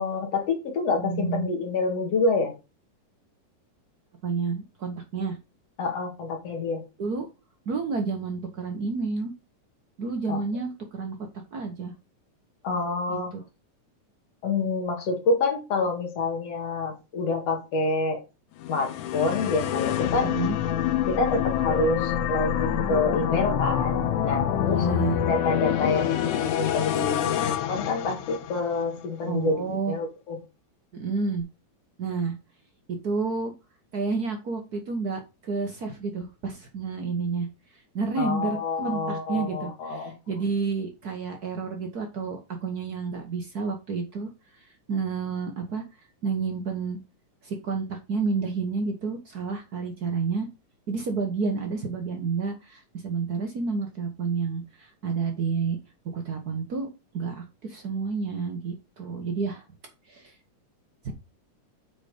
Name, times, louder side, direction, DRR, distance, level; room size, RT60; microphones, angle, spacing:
voice 1, 0.0-2.5 5.8-6.8 10.3-10.4 12.6-13.3 14.4-18.2 18.7-20.3 21.1-24.9 25.3-30.4 38.2-40.1, left 3 dB, 55° left, 2 dB, 3.1 m, -27 dB
voice 2, 0.9-1.5 4.2-5.4 7.0-7.3 7.7-9.3 10.0-11.9 13.1-13.4 20.2-20.6 24.6-25.2 29.3-29.9 30.9-31.4 32.0-32.3 32.9-33.5 33.9-37.5 37.9-44.3 44.6-45.8 46.2-47.0 47.4-50.5 50.9-55.8 56.1-56.9 57.1-59.6 60.1-60.3 61.0-61.1, right 4 dB, 65° right, 4 dB, 0.9 m, -30 dB
sound 1, 18.6-28.8, left 10 dB, 80° left, 2.2 m, -26 dB
8.8 x 4.3 x 5.0 m, 0.28 s
omnidirectional pair, 3.4 m